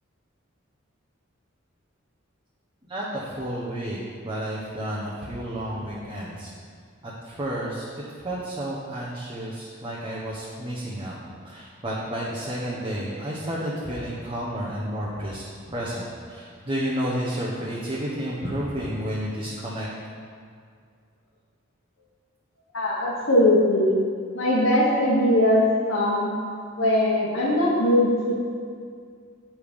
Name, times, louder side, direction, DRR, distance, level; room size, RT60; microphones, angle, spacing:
voice 1, 2.9-4.0 4.2-6.5 7.0-7.9 8.2-11.2 11.4-19.9 25.8-26.0, equal, 25° right, -6 dB, 1.0 m, -31 dB
voice 2, 22.7-23.9 24.3-25.6 25.9-26.3 26.8-28.3, left 1 dB, 85° left, -7 dB, 1.3 m, -20 dB
8.9 x 5.1 x 5.3 m, 2.2 s
head